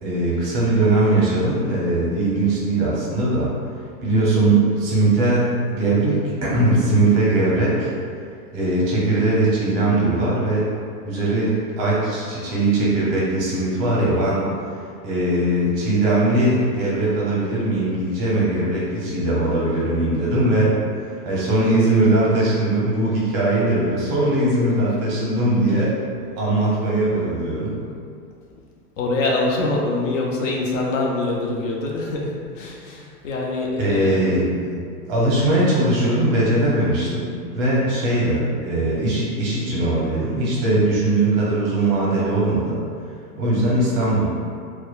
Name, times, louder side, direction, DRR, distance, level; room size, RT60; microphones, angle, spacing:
voice 1, 0.0-3.5 4.0-7.9 8.5-10.7 11.0-14.4 15.0-20.8 21.2-25.9 26.4-27.8 33.8-34.8 35.1-42.8 43.4-44.3, right 2 dB, 35° right, -6 dB, 0.6 m, -20 dB
voice 2, 29.0-34.2, left 2 dB, 55° left, -2 dB, 0.5 m, -24 dB
2.8 x 2.2 x 2.2 m, 2.2 s
hypercardioid pair, 125°, 47 cm